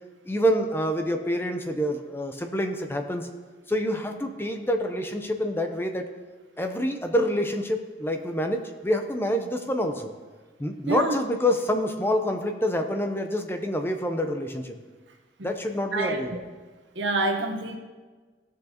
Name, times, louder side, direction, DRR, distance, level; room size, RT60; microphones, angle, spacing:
voice 1, 0.3-3.3 3.7-6.0 6.6-10.1 10.6-14.8 15.4-16.3, equal, 15° left, 5 dB, 0.6 m, -27 dB
voice 2, 16.9-17.8, right 2 dB, 90° right, 3 dB, 1.1 m, -26 dB
15.5 x 6.5 x 2.9 m, 1.4 s
head